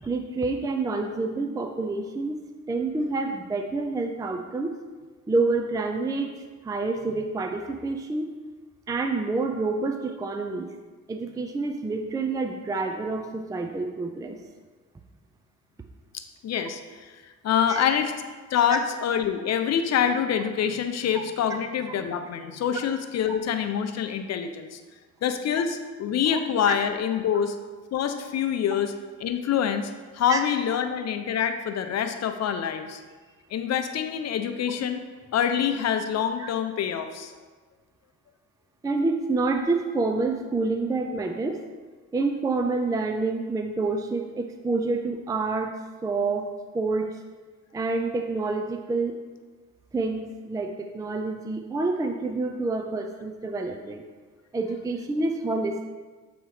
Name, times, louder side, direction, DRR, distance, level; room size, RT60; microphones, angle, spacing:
voice 1, 0.0-2.4 2.7-4.7 5.3-6.3 6.6-8.3 8.9-10.7 11.1-14.4 17.7-17.9 26.3-26.4 30.3-30.4 36.4-36.5 38.8-41.6 42.1-45.7 46.0-46.5 46.7-47.2 47.7-49.2 49.9-54.0 54.5-55.9, right 3 dB, 10° right, 5 dB, 0.4 m, -28 dB
voice 2, 16.1-17.1 17.4-18.1 18.5-24.8 25.2-27.6 27.9-28.9 29.2-33.0 33.5-35.0 35.3-37.3, left 8 dB, 60° left, 8 dB, 0.6 m, -26 dB
7.9 x 3.0 x 4.8 m, 1.4 s
cardioid pair, 90°, 30 cm